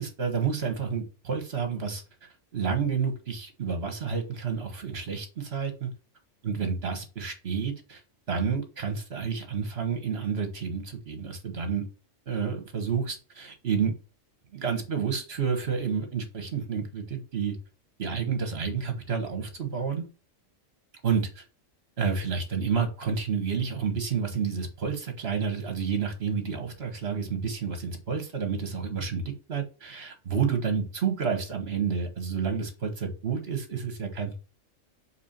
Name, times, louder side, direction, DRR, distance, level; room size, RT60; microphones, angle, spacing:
voice 1, 0.0-5.9 6.4-8.0 8.3-11.9 12.3-13.9 14.5-17.6 18.0-20.1 21.0-21.4 22.0-34.4, right 6 dB, 50° right, 6 dB, 1.7 m, -30 dB
4.9 x 4.2 x 5.9 m, 0.33 s
omnidirectional pair, 1.3 m